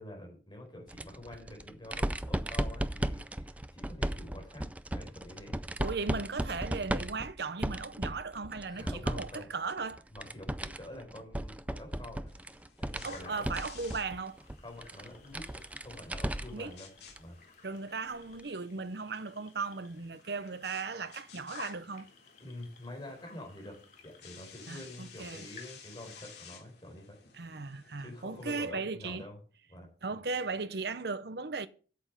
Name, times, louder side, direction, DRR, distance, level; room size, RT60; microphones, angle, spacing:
voice 1, 0.0-4.7 4.9-5.8 8.7-9.5 10.1-12.2 12.8-13.5 14.6-16.9 17.2-17.4 22.4-23.8 24.0-27.2 28.0-29.4 29.7-30.2, left 1 dB, 25° left, 4.4 m, -47 dB
sound 1, 0.9-9.4 9.7-16.7 17.1-17.2 18.4-18.5, right 1 dB, 10° right, 0.4 m, -36 dB
voice 2, 5.8-10.0 13.0-14.4 16.5-16.7 17.6-22.1 24.7-25.5 27.3-29.2 30.0-31.7, right 4 dB, 65° right, 0.8 m, -37 dB
sound 2, 12.3-28.7, left 6 dB, 65° left, 2.9 m, -56 dB
sound 3, 13.0-26.5, left 4 dB, 45° left, 2.0 m, -55 dB
8.4 x 7.9 x 6.2 m
head